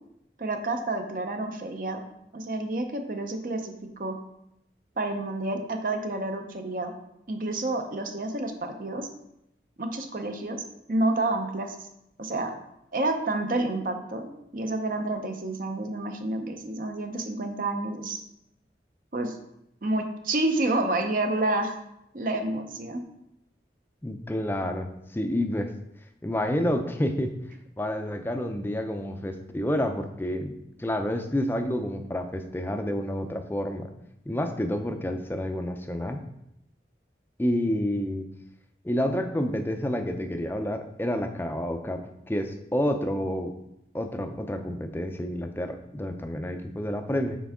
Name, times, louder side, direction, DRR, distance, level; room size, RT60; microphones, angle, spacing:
voice 1, 0.4-2.0 2.3-3.7 4.0-4.2 5.0-6.9 7.3-9.1 9.8-11.7 12.2-12.6 12.9-18.2 19.1-19.4 19.8-21.7 22.1-23.0, right 2 dB, 50° right, 5 dB, 0.6 m, -29 dB
voice 2, 24.0-25.7 26.2-27.3 27.8-33.9 34.3-36.2 37.4-38.3 38.8-42.0 42.3-43.5 43.9-47.4, left 1 dB, 10° left, 6 dB, 0.4 m, -29 dB
6.0 x 4.5 x 3.6 m, 0.82 s
head